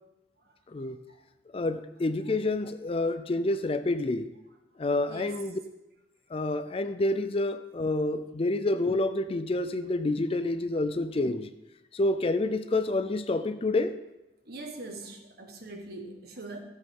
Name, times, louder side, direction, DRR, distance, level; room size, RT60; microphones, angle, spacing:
voice 1, 1.5-4.3 4.8-5.6 6.3-11.5 11.9-14.0, left 2 dB, 30° left, 11 dB, 0.4 m, -28 dB
voice 2, 5.1-5.4 14.5-16.6, right 2 dB, 60° right, 3 dB, 1.4 m, -42 dB
13.0 x 7.6 x 3.7 m, 0.94 s
head